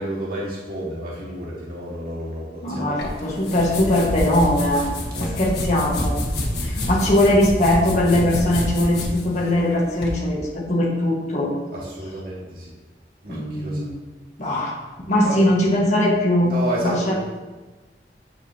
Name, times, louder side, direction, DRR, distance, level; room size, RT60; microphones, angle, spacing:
voice 1, 0.0-3.1 5.1-5.3 11.7-12.7 13.2-13.9 15.2-15.5 16.4-17.1, right 1 dB, 55° right, -6 dB, 1.8 m, -30 dB
voice 2, 2.6-4.9 5.2-6.2 6.6-11.5 13.3-13.9 14.4-14.8 15.1-16.5 16.8-17.1, left 1 dB, 40° left, -4 dB, 1.5 m, -20 dB
sound 1, 3.0-10.2, left 1 dB, 70° left, 1.5 m, -28 dB
9.3 x 6.4 x 2.8 m, 1.2 s
head